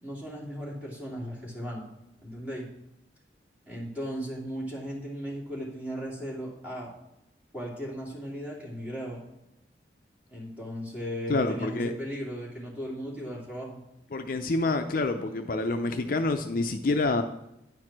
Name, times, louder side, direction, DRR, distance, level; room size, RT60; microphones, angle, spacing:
voice 1, 0.0-1.9 2.2-2.7 3.7-6.9 7.5-9.2 10.3-13.8, equal, 10° right, -5 dB, 2.6 m, -36 dB
voice 2, 11.3-11.9 14.1-17.2, left 2 dB, 50° left, 6 dB, 0.5 m, -27 dB
10.0 x 4.7 x 5.9 m, 0.87 s
head